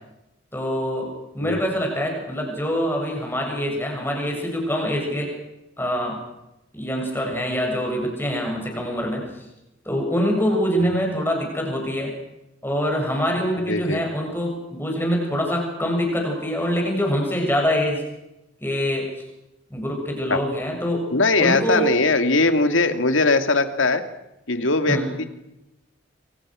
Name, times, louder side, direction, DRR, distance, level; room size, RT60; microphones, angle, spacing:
voice 1, 0.5-5.3 5.8-6.2 6.7-9.4 9.8-12.1 12.6-18.0 18.6-19.1 19.7-21.1 21.4-21.9 24.9-25.1, equal, 10° left, 1 dB, 7.5 m, -24 dB
voice 2, 13.7-14.0 20.3-20.4 21.1-24.0 24.5-25.2, left 3 dB, 75° left, 8 dB, 2.4 m, -20 dB
26.5 x 26.0 x 6.3 m, 0.91 s
head